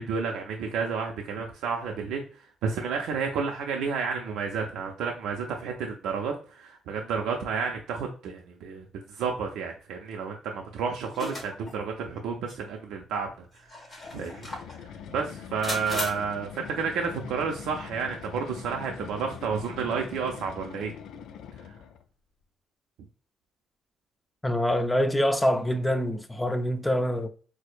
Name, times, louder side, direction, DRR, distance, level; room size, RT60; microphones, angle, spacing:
voice 1, 0.0-2.2 2.6-13.5 14.1-14.5 14.8-20.9 21.6-21.7, right 5 dB, 90° right, 0.5 m, -31 dB
sound 1, 11.1-11.8 12.5-12.6 13.6-14.8 15.6-16.1, left 2 dB, 35° left, 1.2 m, -35 dB
sound 2, 14.0-22.1, left 8 dB, 80° left, 0.3 m, -43 dB
voice 2, 24.4-27.3, equal, 10° left, 0.4 m, -25 dB
4.4 x 2.1 x 2.4 m
cardioid pair, 90°, 0 cm